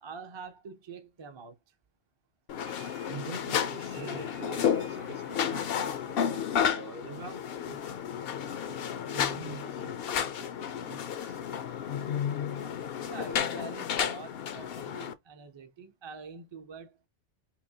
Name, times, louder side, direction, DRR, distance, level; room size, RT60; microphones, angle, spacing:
voice 1, 0.0-1.6 13.1-17.1, right 4 dB, 30° right, 0.6 m, -45 dB
sound 1, 2.5-15.1, left 8 dB, 60° left, 0.7 m, -32 dB
sound 2, 2.6-6.1, right 7 dB, 85° right, 1.5 m, -55 dB
voice 2, 3.1-7.8 8.3-11.4, right 4 dB, 55° right, 0.9 m, -45 dB
5.7 x 2.1 x 2.7 m
omnidirectional pair, 1.2 m